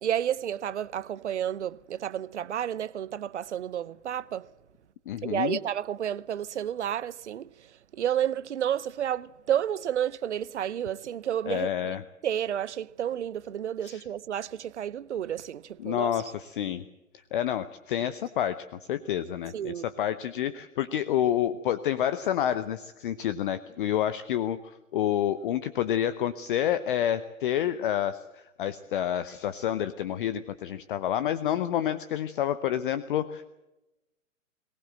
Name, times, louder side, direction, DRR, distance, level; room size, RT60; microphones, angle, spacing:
voice 1, 0.0-4.5 5.2-7.5 8.0-11.9 12.2-16.1 19.5-19.8, right 10 dB, 60° right, 0.8 m, -31 dB
voice 2, 5.1-5.6 11.5-12.0 13.8-14.1 15.8-16.8 17.3-33.5, left 10 dB, 40° left, 0.9 m, -29 dB
22.0 x 18.5 x 7.7 m
figure-of-eight pair, 120°, 40 cm